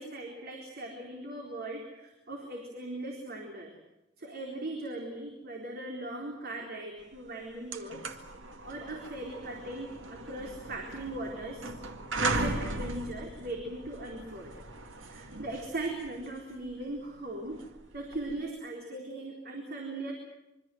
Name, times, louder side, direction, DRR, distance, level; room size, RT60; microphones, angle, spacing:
voice 1, 0.0-3.7 4.2-8.1 8.6-11.7 12.2-14.6 15.1-17.6 17.9-20.1, right 2 dB, 55° right, 1 dB, 4.1 m, -39 dB
sound 1, 7.1-7.2 7.5-18.4, right 2 dB, 75° right, 2.1 m, -38 dB
26.0 x 24.0 x 7.9 m, 0.94 s
head